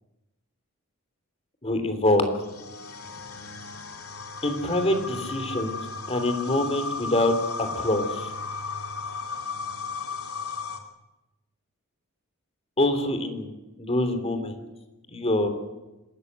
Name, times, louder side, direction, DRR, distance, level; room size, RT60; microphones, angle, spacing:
voice 1, 1.6-2.3 4.4-5.8 6.1-7.3 7.6-8.3 12.8-14.6 15.1-15.5, left 1 dB, 30° left, 8 dB, 2.9 m, -25 dB
sound 1, 2.4-10.8, left 4 dB, 85° left, 2.6 m, -35 dB
26.5 x 13.5 x 9.5 m, 1.0 s
head